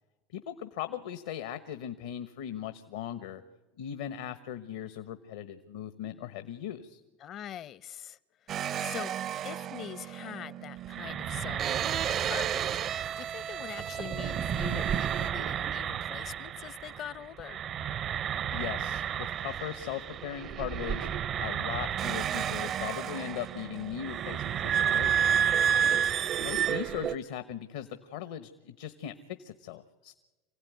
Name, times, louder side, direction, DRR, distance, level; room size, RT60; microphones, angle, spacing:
voice 1, 0.3-3.4 3.8-7.0 18.5-21.1 21.4-25.4 26.4-30.1, left 10 dB, 75° left, 1.2 m, -39 dB
voice 2, 7.2-8.2 8.5-9.1 9.4-17.6 25.8-26.2, left 11 dB, 50° left, 0.7 m, -43 dB
sound 1, 8.5-17.1 17.4-27.2, right 9 dB, 45° right, 0.7 m, -31 dB
sound 2, 17.3-19.7, right 7 dB, 75° right, 1.4 m, -49 dB
26.5 x 16.5 x 9.5 m
hypercardioid pair, 85°, 0 cm